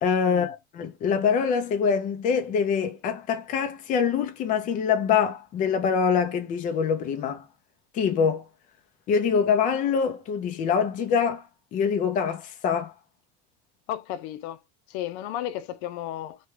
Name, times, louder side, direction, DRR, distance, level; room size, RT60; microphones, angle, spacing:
voice 1, 0.0-7.4 7.9-8.4 9.1-11.4 11.7-12.9, left 6 dB, 25° left, 0.4 m, -24 dB
voice 2, 13.9-14.6 14.9-16.4, left 12 dB, 75° left, 0.5 m, -33 dB
3.3 x 2.2 x 2.8 m
cardioid pair, 170°, 33 cm